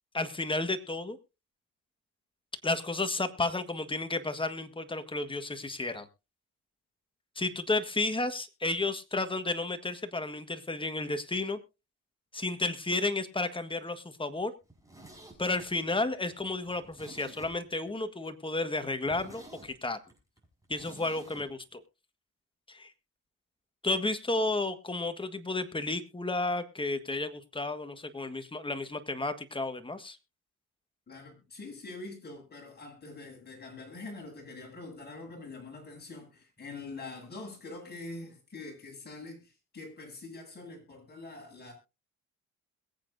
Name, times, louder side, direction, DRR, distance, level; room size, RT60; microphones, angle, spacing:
voice 1, 0.1-1.2 2.6-6.1 7.3-11.6 12.3-14.5 15.4-20.0 20.7-21.8 22.7-22.9 23.8-30.2, left 2 dB, 15° left, 1.6 m, -32 dB
Zipper (clothing), 14.6-17.9 18.2-18.3 18.7-18.8 19.0-21.5 21.7-21.8, right 1 dB, 10° right, 5.9 m, -51 dB
voice 2, 31.1-41.7, left 3 dB, 35° left, 7.8 m, -44 dB
22.0 x 8.6 x 2.7 m
cardioid pair, 90°, 30 cm